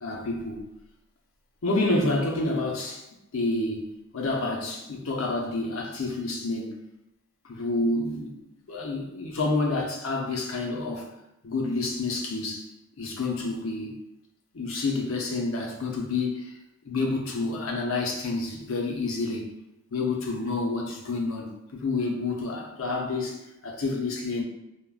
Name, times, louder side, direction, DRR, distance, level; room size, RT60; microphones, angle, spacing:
voice 1, 0.0-0.6 1.6-3.0 3.3-6.8 7.4-8.4 8.7-11.1 11.4-12.7 13.0-14.0 14.5-16.6 16.8-19.5 19.9-24.4, left 2 dB, 85° left, 0 dB, 0.6 m, -29 dB
3.5 x 2.1 x 2.3 m, 0.90 s
head